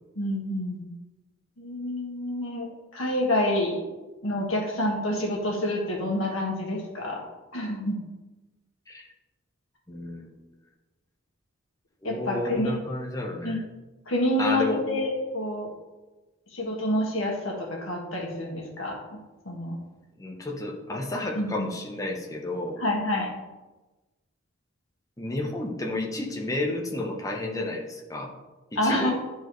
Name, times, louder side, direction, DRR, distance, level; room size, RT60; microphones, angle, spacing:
voice 1, 0.1-0.8 1.6-3.9 4.2-7.2 7.5-8.0 12.0-12.8 13.4-13.6 14.0-15.7 16.5-19.2 19.4-19.8 20.9-21.0 21.3-21.7 22.8-23.3 28.7-29.1, left 1 dB, 80° left, -1 dB, 1.8 m, -28 dB
voice 2, 9.9-10.4 12.0-13.6 14.4-14.8 20.2-22.8 25.2-28.3 28.8-29.1, left 2 dB, 15° left, 0 dB, 0.8 m, -31 dB
10.0 x 4.6 x 3.1 m, 1.1 s
head